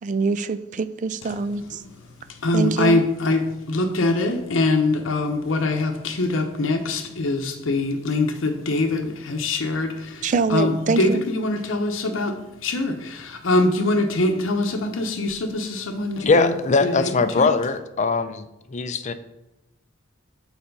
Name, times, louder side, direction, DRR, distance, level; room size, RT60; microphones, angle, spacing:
voice 1, 0.0-1.8 2.5-3.0 10.2-11.2, right 4 dB, 40° right, 0.3 m, -24 dB
voice 2, 2.3-16.5 16.8-17.1 17.4-17.5, left 2 dB, 90° left, 0.7 m, -23 dB
voice 3, 16.3-18.4 18.7-19.1, left 4 dB, 40° left, 0.5 m, -21 dB
6.9 x 4.2 x 5.3 m
head